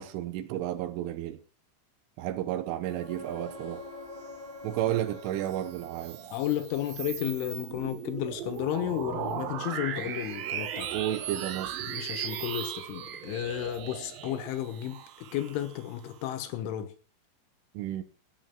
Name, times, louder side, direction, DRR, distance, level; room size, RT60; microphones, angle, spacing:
voice 1, 0.0-1.4 2.2-3.9 4.6-6.2 10.9-11.8 17.8-18.0, right 12 dB, 80° right, 3.4 m, -32 dB
sound 1, 2.8-6.6 10.3-10.4, left 2 dB, 10° left, 1.8 m, -45 dB
sound 2, 5.3-16.2, right 9 dB, 65° right, 2.5 m, -38 dB
voice 2, 6.3-10.9 11.8-16.9, left 12 dB, 80° left, 3.7 m, -33 dB
16.0 x 7.3 x 7.4 m
omnidirectional pair, 5.7 m